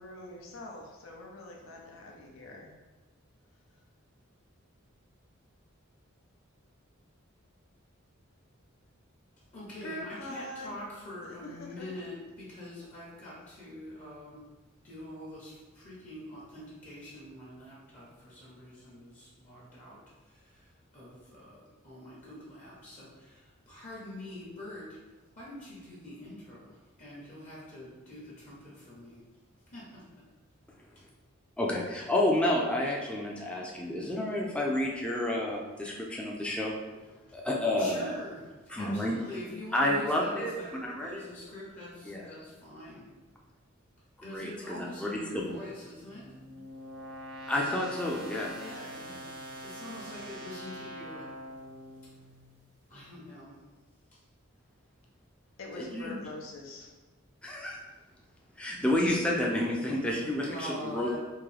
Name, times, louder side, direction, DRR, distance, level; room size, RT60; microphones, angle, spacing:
voice 1, 0.0-2.7 9.8-10.8 11.3-11.9 55.6-56.9, left 1 dB, 85° left, -1 dB, 0.6 m, -43 dB
voice 2, 9.5-14.4 14.8-25.0 25.3-29.2 29.7-30.2 37.3-37.4 37.6-43.0 44.2-46.3 48.5-49.3 49.6-51.4 52.9-53.6 54.1-54.2 59.4-60.1 60.4-61.2, left 1 dB, 40° left, -6 dB, 0.8 m, -45 dB
voice 3, 31.6-36.8 37.3-38.1 38.7-39.2 39.7-40.5 40.8-41.2 42.1-42.3 44.2-45.5 47.5-48.5 55.8-56.1 57.4-57.8 58.6-61.2, left 1 dB, 5° left, -2 dB, 0.4 m, -30 dB
sound 1, 45.5-52.6, equal, 90° right, 1.0 m, -44 dB
3.7 x 2.7 x 3.2 m, 1.2 s
head